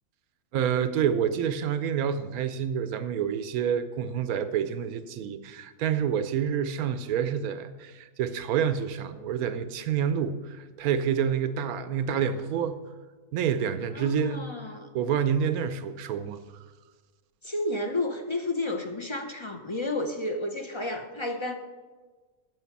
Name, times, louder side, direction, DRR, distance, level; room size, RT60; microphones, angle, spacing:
voice 1, 0.5-12.8 13.3-14.4 14.9-16.4, right 8 dB, 90° right, 12 dB, 1.2 m, -28 dB
voice 2, 13.9-14.9 17.4-21.5, left 2 dB, 35° left, 6 dB, 0.4 m, -31 dB
9.3 x 7.8 x 6.0 m, 1.4 s
omnidirectional pair, 1.5 m